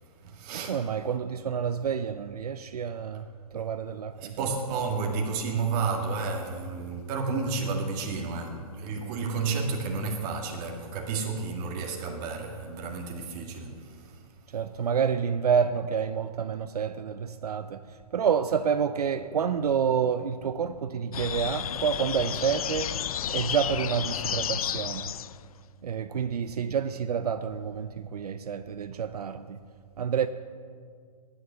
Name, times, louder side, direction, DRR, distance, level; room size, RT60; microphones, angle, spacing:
voice 1, 0.0-0.8 4.2-14.3, right 4 dB, 30° right, 2.1 m, -31 dB
voice 2, 0.5-4.4 14.5-23.0 23.3-25.1 25.8-29.6 30.0-30.3, right 7 dB, 80° right, 0.6 m, -29 dB
sound 1, 21.1-25.5, left 10 dB, 65° left, 0.5 m, -32 dB
12.5 x 9.5 x 6.8 m
hypercardioid pair, 140°, 20 cm